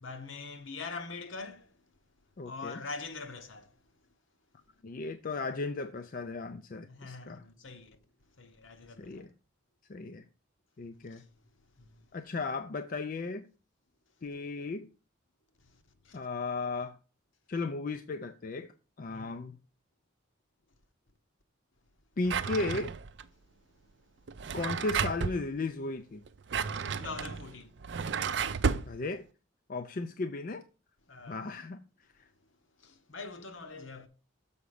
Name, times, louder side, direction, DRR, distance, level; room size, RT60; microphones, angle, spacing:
voice 1, 0.0-1.8 2.4-3.8 6.9-8.0 8.4-9.3 11.0-12.1 15.6-16.3 19.1-19.4 26.9-27.8 31.1-31.5 32.8-34.1, left 4 dB, 70° left, 1.1 m, -44 dB
voice 2, 2.4-2.8 4.8-7.4 9.0-9.3 9.9-10.2 10.8-11.2 12.1-13.5 14.2-14.9 16.1-17.0 17.5-18.7 19.0-19.6 22.2-22.9 24.5-26.2 28.9-29.2 29.7-30.6 31.3-31.8, left 3 dB, 40° left, 0.4 m, -35 dB
Drawer open or close, 22.2-23.2 24.3-25.4 26.3-28.9, right 6 dB, 55° right, 0.5 m, -32 dB
7.0 x 5.1 x 4.9 m
head